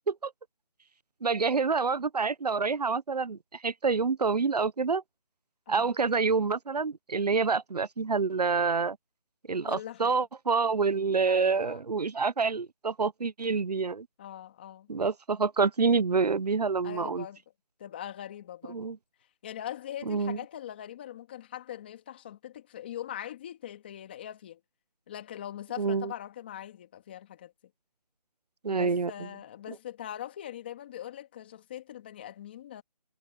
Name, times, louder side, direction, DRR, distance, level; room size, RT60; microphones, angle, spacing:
voice 1, 1.2-5.0 5.7-9.0 9.5-14.1 14.9-17.2 18.7-19.0 20.1-20.4 25.8-26.1 28.6-29.1, right 4 dB, 75° right, 1.1 m, -27 dB
voice 2, 9.6-10.2 11.2-11.8 14.2-14.9 16.8-17.4 17.8-18.8 19.4-24.6 25.1-27.5 28.7-32.8, left 11 dB, 15° left, 2.3 m, -41 dB
hypercardioid pair, 175°, 21 cm